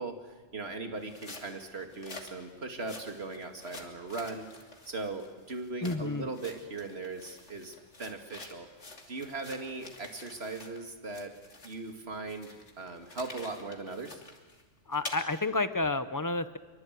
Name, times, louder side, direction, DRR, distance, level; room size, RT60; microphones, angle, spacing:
voice 1, 0.0-8.7 9.1-11.3 11.6-14.2, right 3 dB, 55° right, 5 dB, 2.7 m, -39 dB
sound 1, 1.0-10.8 11.1-15.2, left 3 dB, 65° left, 3.1 m, -48 dB
voice 2, 5.8-6.3 14.9-16.6, left 2 dB, 15° left, 12 dB, 0.9 m, -30 dB
25.0 x 24.0 x 9.5 m, 1.3 s
omnidirectional pair, 1.3 m